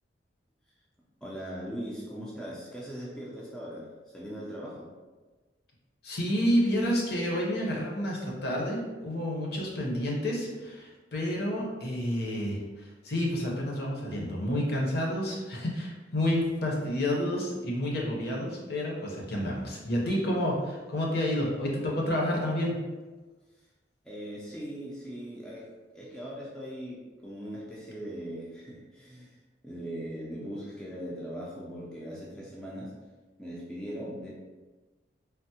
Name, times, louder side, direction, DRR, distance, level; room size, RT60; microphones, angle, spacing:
voice 1, 1.2-4.9 24.0-25.7 25.9-29.3 29.6-32.9 33.4-34.3, equal, 5° left, -6 dB, 0.3 m, -40 dB
voice 2, 6.0-22.8, equal, 55° left, -2 dB, 0.7 m, -29 dB
3.3 x 2.0 x 2.8 m, 1.3 s
head